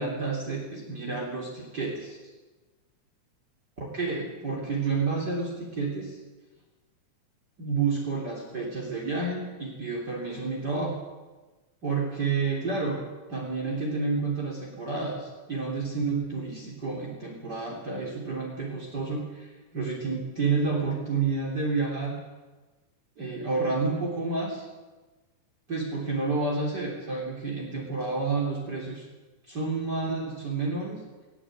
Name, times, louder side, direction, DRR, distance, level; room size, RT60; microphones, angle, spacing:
voice 1, 0.0-2.2 3.8-6.2 7.6-11.0 11.8-13.0 13.3-22.2 23.2-24.7 25.7-29.1 29.5-31.0, right 4 dB, 30° right, -1 dB, 3.9 m, -30 dB
19.5 x 19.0 x 9.3 m, 1.2 s
omnidirectional pair, 3.5 m